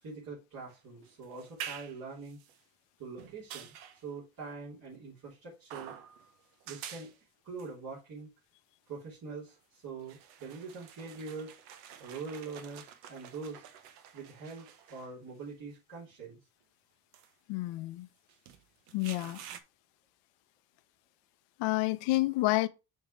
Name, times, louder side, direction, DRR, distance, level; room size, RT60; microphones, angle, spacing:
voice 1, 0.0-2.4 3.0-5.9 6.6-7.1 7.4-8.3 8.9-11.5 12.0-13.6 14.1-16.4, right 4 dB, 50° right, 3.0 m, -44 dB
sound 1, 0.7-2.6 3.2-4.0 5.7-6.3 6.6-7.1 7.6-7.7 9.5-9.6 10.0-15.4 16.1-16.2 17.1-17.3 18.3-19.6, right 9 dB, 85° right, 0.9 m, -48 dB
voice 2, 17.5-18.1 18.9-19.4 21.6-22.7, left 19 dB, 75° left, 0.7 m, -29 dB
6.3 x 3.5 x 4.4 m
supercardioid pair, 65°, 43 cm